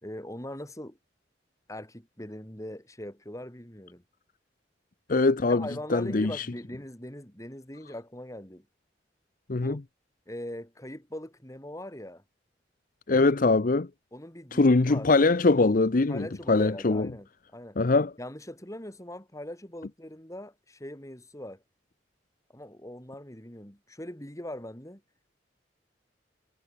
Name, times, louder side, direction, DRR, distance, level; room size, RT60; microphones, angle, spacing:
voice 1, 0.0-1.0 1.7-4.0 5.5-8.7 9.5-9.8 10.3-12.2 14.1-15.1 16.1-17.8 18.2-21.6 22.5-25.0, left 1 dB, 20° left, 4.6 m, -41 dB
voice 2, 5.1-6.5 9.5-9.8 13.1-13.9 14.5-17.1 17.8-18.1, left 3 dB, 50° left, 0.7 m, -23 dB
head